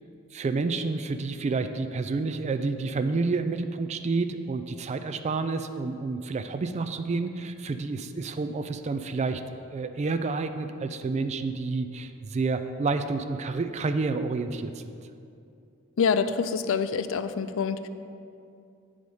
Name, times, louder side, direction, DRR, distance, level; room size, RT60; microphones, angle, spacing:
voice 1, 0.3-9.4 9.7-15.0, right 3 dB, 30° right, 9 dB, 0.3 m, -29 dB
voice 2, 16.0-17.9, left 6 dB, 65° left, 12 dB, 0.4 m, -26 dB
9.1 x 4.9 x 5.4 m, 2.6 s
head